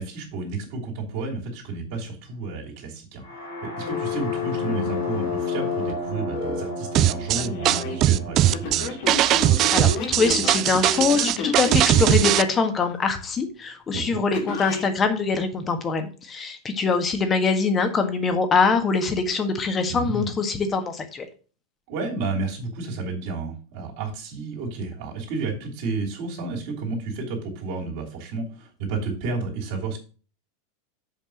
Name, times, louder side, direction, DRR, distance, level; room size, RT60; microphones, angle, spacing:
voice 1, 0.0-3.2 3.6-9.0 13.9-14.2 19.9-20.3 21.9-30.0, right 3 dB, 55° right, -2 dB, 2.9 m, -31 dB
sound 1, 3.2-11.1, equal, 80° left, 4.1 m, -35 dB
Telephone, 3.9-6.6 7.3-8.0 8.5-12.3 14.3-14.9, left 7 dB, 55° left, 2.5 m, -30 dB
sound 2, 6.9-12.4, right 14 dB, 40° right, 0.4 m, -19 dB
voice 2, 9.7-21.3, left 4 dB, 25° left, 7 dB, 1.6 m, -23 dB
7.4 x 5.4 x 6.3 m, 0.38 s
figure-of-eight pair, 90°, 0 cm